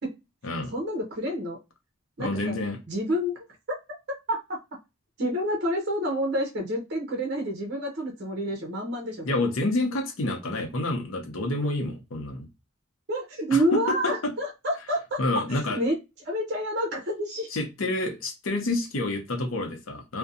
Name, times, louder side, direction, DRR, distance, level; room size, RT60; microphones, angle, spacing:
voice 1, 0.7-1.6 2.2-2.6 2.9-3.4 4.3-4.6 5.2-9.3 13.1-15.2 15.5-16.0 16.2-17.5, equal, 50° right, 1 dB, 0.7 m, -28 dB
voice 2, 2.2-2.8 9.2-12.5 13.5-14.3 15.2-15.8 17.5-20.2, left 2 dB, 80° left, 3 dB, 0.7 m, -28 dB
2.6 x 2.2 x 2.5 m, 0.24 s
head